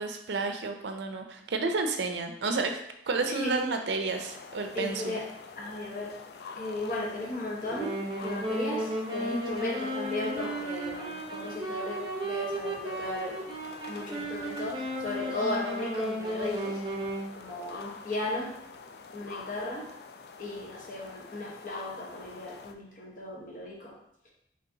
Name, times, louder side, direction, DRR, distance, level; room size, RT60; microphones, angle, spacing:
voice 1, 0.0-2.7 3.1-5.2, right 3 dB, 85° right, 6 dB, 0.5 m, -31 dB
voice 2, 3.3-3.6 4.7-5.2 5.6-6.2 6.6-7.9 8.2-13.4 13.9-16.8 17.3-18.5 19.1-19.9 20.4-23.9, left 1 dB, 50° left, -3 dB, 1.1 m, -35 dB
sound 1, 4.2-22.7, left 4 dB, 65° left, 0.4 m, -46 dB
Wind instrument woodwind instrument, 7.8-17.3, right 1 dB, 25° right, 0.7 m, -34 dB
5.3 x 3.4 x 2.7 m, 0.76 s
head